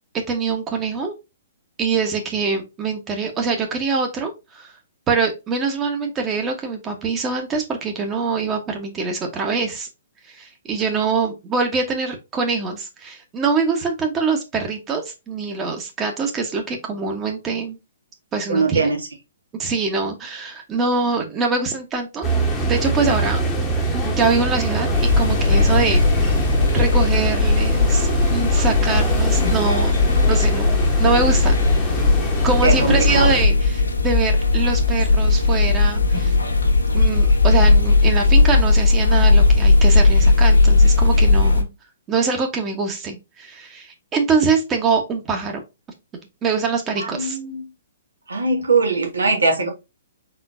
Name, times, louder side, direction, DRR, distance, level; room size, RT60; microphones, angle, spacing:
voice 1, 0.1-1.1 1.8-4.7 5.1-9.9 10.3-17.8 18.3-18.9 19.6-22.3 22.6-23.4 23.9-29.9 30.3-31.6 32.4-36.4 36.9-41.7 42.1-45.6 46.4-47.4, right 4 dB, 20° right, 1.2 m, -24 dB
voice 2, 18.5-19.0 32.6-33.3 47.0-47.7 48.3-49.7, right 3 dB, 75° right, 1.6 m, -20 dB
sound 1, 22.2-33.5, right 1 dB, 15° left, 1.1 m, -24 dB
sound 2, 24.9-41.6, left 3 dB, 75° left, 1.3 m, -17 dB
4.3 x 3.8 x 2.6 m
figure-of-eight pair, 120°, 0 cm